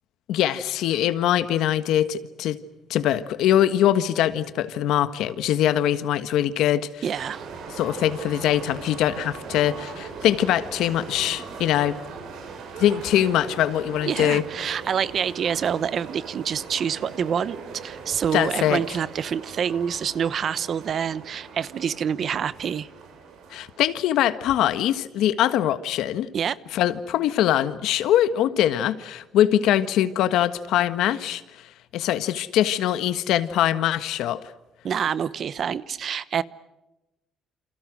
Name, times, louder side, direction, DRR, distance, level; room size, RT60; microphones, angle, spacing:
voice 1, 0.3-2.6 2.9-7.0 7.8-12.0 12.8-14.4 18.3-18.8 23.5-26.3 26.7-31.4 31.9-34.4, left 11 dB, 80° left, 12 dB, 1.4 m, -22 dB
voice 2, 7.0-7.4 14.1-17.6 17.8-22.9 26.3-26.6 34.8-36.4, right 8 dB, 40° right, 17 dB, 0.9 m, -27 dB
sound 1, 7.1-23.8, right 5 dB, 75° right, 7.4 m, -40 dB
29.0 x 28.5 x 6.4 m, 0.97 s
cardioid pair, 170°, 0 cm